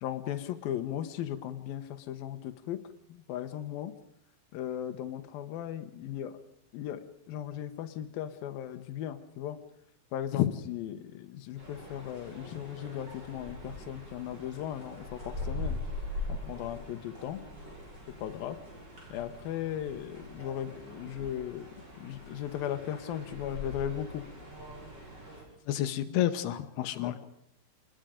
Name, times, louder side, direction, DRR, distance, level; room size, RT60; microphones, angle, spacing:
voice 1, 0.0-2.8 3.1-3.9 4.5-6.4 6.7-9.6 10.1-15.8 16.3-17.4 18.2-18.6 19.1-21.7 22.0-24.2 26.1-26.2 27.0-27.2, left 11 dB, 75° left, 8 dB, 2.8 m, -37 dB
sound 1, 11.6-25.4, left 2 dB, 25° right, 6.1 m, -42 dB
voice 2, 25.7-27.3, left 13 dB, 90° left, 9 dB, 3.0 m, -29 dB
26.5 x 21.0 x 5.2 m, 0.75 s
omnidirectional pair, 4.5 m